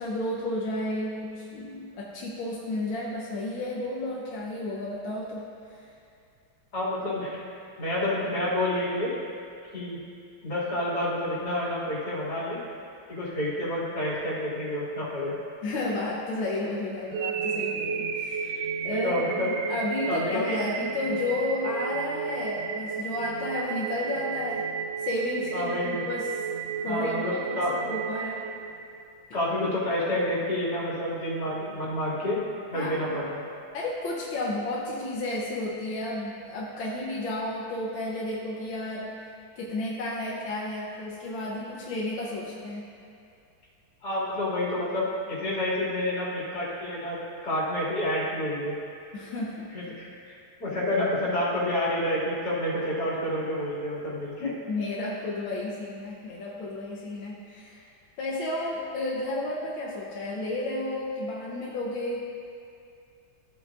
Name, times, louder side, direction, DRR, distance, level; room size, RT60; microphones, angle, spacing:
voice 1, 0.0-5.9 15.6-18.6 18.9-24.7 25.0-26.4 26.8-28.5 32.7-33.2 33.7-39.2 39.6-42.9 49.1-49.8 54.7-57.9 58.2-62.2, left 2 dB, 90° left, -4 dB, 1.7 m, -32 dB
voice 2, 6.7-7.3 7.8-9.1 9.7-10.0 10.4-12.6 13.1-15.3 18.4-18.5 18.9-19.5 20.1-20.6 25.5-26.0 26.8-27.7 29.3-32.4 32.7-33.4 44.0-47.2 47.4-48.7 49.7-54.5, left 1 dB, 55° left, -8 dB, 3.2 m, -29 dB
sound 1, 17.1-29.2, right 6 dB, 80° right, 0.7 m, -33 dB
15.5 x 7.9 x 2.5 m, 2.5 s
omnidirectional pair, 2.1 m